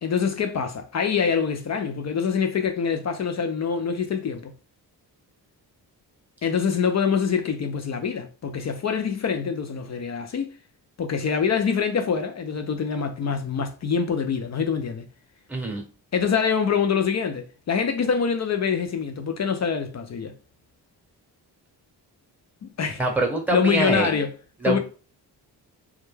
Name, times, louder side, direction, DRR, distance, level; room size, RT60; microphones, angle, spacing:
voice 1, 0.0-4.5 6.4-10.5 11.0-15.0 16.1-20.3 22.6-23.0 23.5-24.3 24.7-24.8, left 6 dB, 45° left, 0.4 m, -25 dB
voice 2, 15.5-15.8 23.0-24.1 24.6-24.8, right 2 dB, 5° right, 0.8 m, -24 dB
2.3 x 2.1 x 3.1 m
cardioid pair, 80°, 40 cm